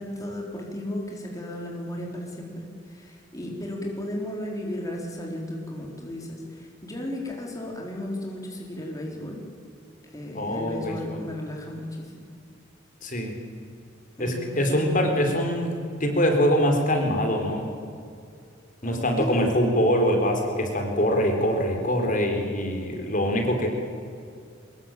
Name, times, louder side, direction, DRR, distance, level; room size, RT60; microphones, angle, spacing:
voice 1, 0.0-9.4 10.1-12.2 14.2-15.2 18.8-19.7, left 1 dB, 20° left, -1 dB, 3.9 m, -35 dB
voice 2, 10.3-11.2 13.0-13.4 14.2-17.7 18.8-23.7, equal, 45° left, 3 dB, 4.1 m, -24 dB
24.0 x 21.5 x 9.1 m, 2.3 s
head